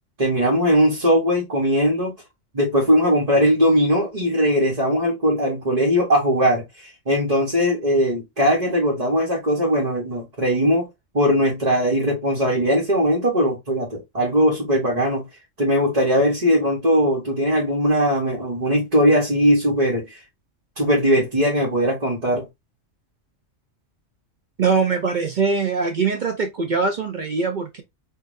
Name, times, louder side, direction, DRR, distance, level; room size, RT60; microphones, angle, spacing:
voice 1, 0.2-2.1 2.5-10.9 11.1-15.3 15.6-20.2 20.8-22.4, equal, 35° right, 1.2 m, -20 dB
voice 2, 24.6-27.8, right 4 dB, 50° right, 0.6 m, -22 dB
4.8 x 2.6 x 2.5 m
omnidirectional pair, 1.3 m